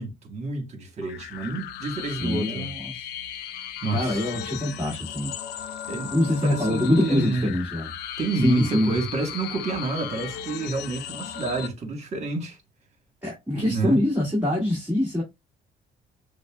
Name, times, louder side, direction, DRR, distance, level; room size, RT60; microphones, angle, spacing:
voice 1, 0.0-2.7 3.8-4.2 5.9-7.5 8.2-12.6 13.6-14.0, right 3 dB, 40° right, 1.4 m, -29 dB
sound 1, 1.0-11.7, left 10 dB, 80° left, 0.5 m, -36 dB
voice 2, 2.2-2.9 3.9-5.3 6.1-7.9 8.4-8.9 13.2-15.2, left 1 dB, 10° right, 1.8 m, -24 dB
6.5 x 2.2 x 2.3 m
cardioid pair, 110°, 17 cm